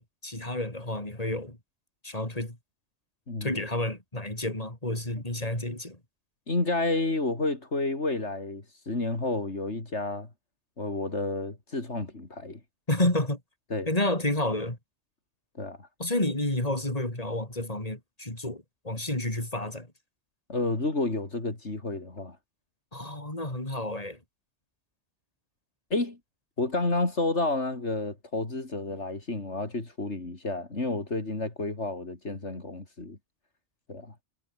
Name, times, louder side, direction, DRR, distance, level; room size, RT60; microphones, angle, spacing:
voice 1, 0.0-1.6 2.0-2.6 3.4-6.0 12.9-13.4 13.9-14.8 16.0-19.9 22.9-24.2, left 1 dB, 30° left, 5.2 m, -30 dB
voice 2, 3.3-3.6 6.5-10.3 10.8-12.6 13.7-13.9 15.6-15.9 20.5-22.4 25.9-26.2 26.6-33.2 33.9-34.1, left 2 dB, 75° left, 4.1 m, -30 dB
omnidirectional pair, 1.2 m